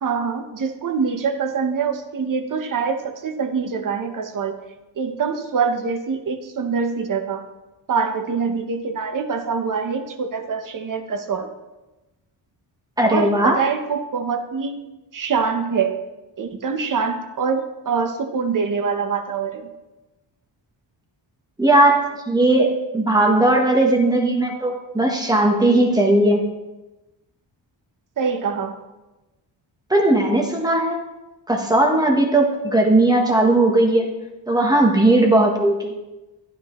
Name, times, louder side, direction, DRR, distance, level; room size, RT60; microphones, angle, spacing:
voice 1, 0.0-4.6 5.0-7.4 7.9-11.5 13.1-14.7 15.1-16.0 16.4-19.7 28.2-28.8, right 5 dB, 45° right, 6 dB, 0.9 m, -24 dB
voice 2, 13.0-13.6 21.6-26.4 29.9-31.0 31.5-34.1 34.5-35.9, right 1 dB, 10° right, 0 dB, 1.0 m, -17 dB
12.0 x 9.2 x 3.1 m, 1.0 s
wide cardioid pair, 180°, 45 cm